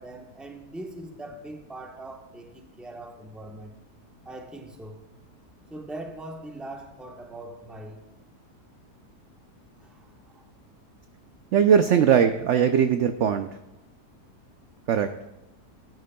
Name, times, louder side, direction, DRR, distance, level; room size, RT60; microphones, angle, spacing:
voice 1, 0.0-3.8 4.2-5.0 5.7-8.0 9.8-10.4 11.9-12.2, right 1 dB, ahead, 2 dB, 0.8 m, -41 dB
voice 2, 11.5-13.5 14.9-15.1, right 8 dB, 70° right, 8 dB, 0.7 m, -20 dB
18.0 x 9.4 x 2.2 m, 0.96 s
omnidirectional pair, 1.7 m